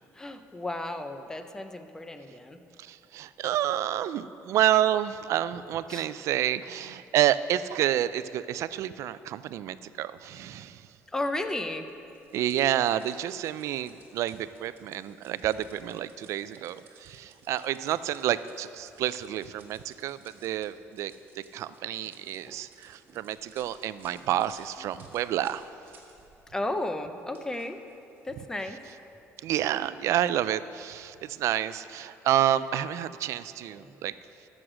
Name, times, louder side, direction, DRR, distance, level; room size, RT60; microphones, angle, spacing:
voice 1, 0.1-2.6 5.9-6.1 11.1-11.9 22.5-22.6 26.5-27.8 28.2-28.8 33.7-34.0, left 2 dB, 10° left, 8 dB, 0.6 m, -34 dB
voice 2, 2.8-10.9 12.3-25.7 29.4-34.1, right 12 dB, 65° right, 15 dB, 0.3 m, -29 dB
sound 1, 11.9-26.5 26.8-29.8, right 4 dB, 40° right, 1.7 m, -58 dB
14.0 x 6.3 x 6.3 m, 2.8 s
cardioid pair, 145°, 5 cm